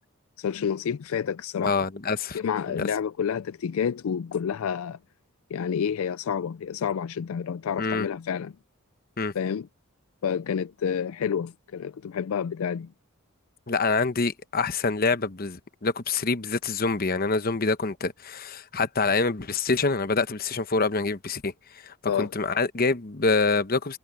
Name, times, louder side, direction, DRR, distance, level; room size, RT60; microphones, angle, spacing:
voice 1, 0.4-1.8 2.3-5.0 5.5-8.5 9.3-9.7 10.2-12.9 22.1-22.3, left 7 dB, 70° left, 0.4 m, -29 dB
voice 2, 1.6-2.4 2.8-2.9 7.8-8.1 9.2-9.3 13.7-21.5 21.8-24.0, left 4 dB, 40° left, 0.9 m, -26 dB
head